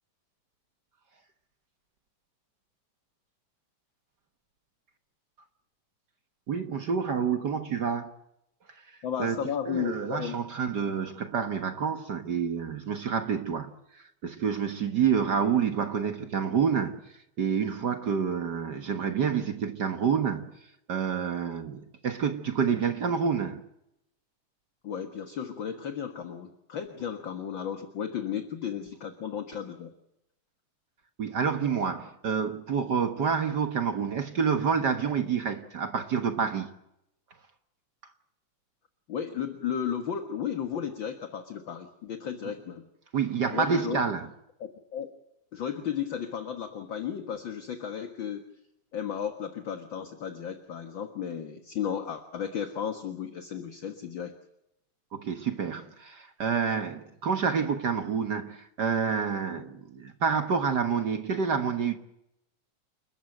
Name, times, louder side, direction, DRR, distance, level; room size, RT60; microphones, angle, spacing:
voice 1, 6.5-8.1 9.2-9.4 9.7-13.7 14.2-17.0 17.4-20.5 20.9-23.6 31.2-36.7 43.1-44.3 55.1-62.0, right 6 dB, 60° right, 1.0 m, -28 dB
voice 2, 9.0-10.4 24.8-29.9 39.1-42.9 43.5-44.0 44.6-45.1 45.5-48.4 48.9-54.3 59.5-59.6, left 8 dB, 50° left, 1.6 m, -34 dB
29.5 x 13.5 x 9.2 m
omnidirectional pair, 3.9 m